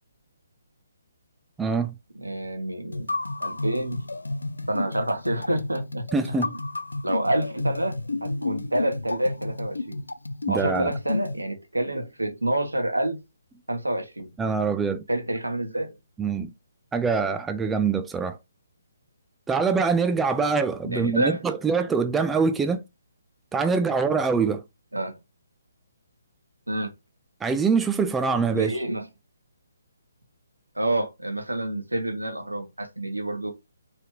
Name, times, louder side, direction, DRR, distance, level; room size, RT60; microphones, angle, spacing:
voice 1, 1.6-1.9 6.1-6.5 10.5-10.9 14.4-15.0 16.2-16.5 16.9-18.4 19.5-22.8 23.5-24.6 27.4-28.7, right 5 dB, 10° right, 0.4 m, -24 dB
voice 2, 2.1-3.1 3.4-4.0 4.7-6.6 7.0-10.0 10.5-13.2 13.7-14.3 15.1-16.0 20.8-21.4 24.9-25.2 26.7-26.9 28.5-29.1 30.7-33.5, right 1 dB, 85° right, 1.4 m, -28 dB
sound 1, 2.9-11.4, left 2 dB, 80° left, 0.5 m, -31 dB
4.4 x 3.4 x 3.1 m
figure-of-eight pair, 140°, 0 cm